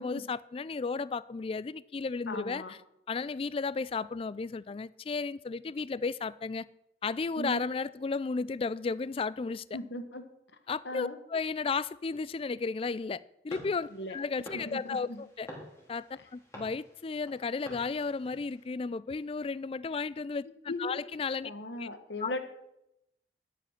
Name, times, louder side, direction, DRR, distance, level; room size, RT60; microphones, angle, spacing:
voice 1, 0.0-2.8 3.1-6.7 7.0-9.7 10.7-15.5 15.9-16.0 16.3-21.5 21.8-21.9 22.2-22.3, left 4 dB, 30° left, 0.3 m, -34 dB
voice 2, 2.3-2.7 7.4-7.6 9.7-10.2 10.8-11.2 13.9-15.2 20.7-20.9 21.4-22.4, left 1 dB, 85° left, 1.5 m, -38 dB
sound 1, 13.5-18.6, equal, 15° left, 4.0 m, -49 dB
13.0 x 9.1 x 5.8 m
head